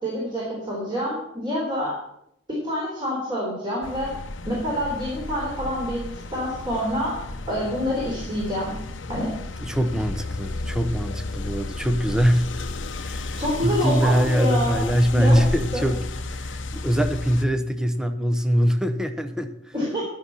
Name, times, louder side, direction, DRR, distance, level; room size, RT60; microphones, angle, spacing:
voice 1, 0.0-2.0 2.6-4.1 4.5-6.0 6.3-7.1 7.5-8.7 9.1-9.3 13.3-14.8 15.1-15.4 15.7-15.8 19.7-20.0, equal, 25° right, -5 dB, 3.8 m, -27 dB
sound 1, 3.8-17.5, left 2 dB, 75° left, 0.8 m, -33 dB
voice 2, 9.6-12.7 12.9-19.7, equal, 5° right, 7 dB, 0.8 m, -23 dB
12.0 x 6.3 x 7.1 m, 0.76 s
head